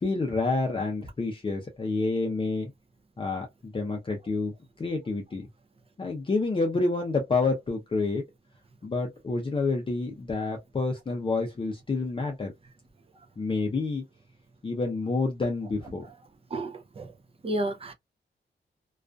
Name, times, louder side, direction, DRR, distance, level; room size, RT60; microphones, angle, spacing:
voice 1, 0.0-2.7 3.2-5.5 6.0-8.2 8.8-12.5 13.4-14.0 14.6-16.0, left 3 dB, 25° left, 0.5 m, -28 dB
voice 2, 16.5-17.1 17.4-17.9, right 1 dB, 30° right, 0.5 m, -31 dB
2.4 x 2.3 x 2.2 m
wide cardioid pair, 130°, 19 cm